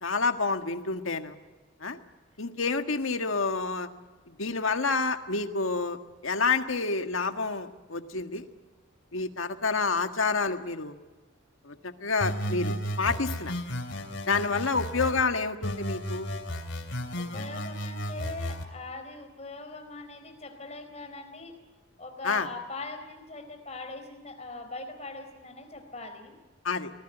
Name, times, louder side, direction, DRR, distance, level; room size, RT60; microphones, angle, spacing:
voice 1, 0.0-1.3 1.8-2.0 2.4-3.9 4.3-8.5 9.1-10.9 11.6-13.6 14.3-16.3 22.2-22.5 26.6-26.9, left 4 dB, 80° left, 8 dB, 1.6 m, -28 dB
sound 1, 12.2-15.2 15.6-18.6, equal, 60° left, 2.9 m, -34 dB
voice 2, 17.2-21.6 22.0-26.3, left 3 dB, 35° left, 5 dB, 4.1 m, -41 dB
25.5 x 19.0 x 9.0 m, 1.2 s
head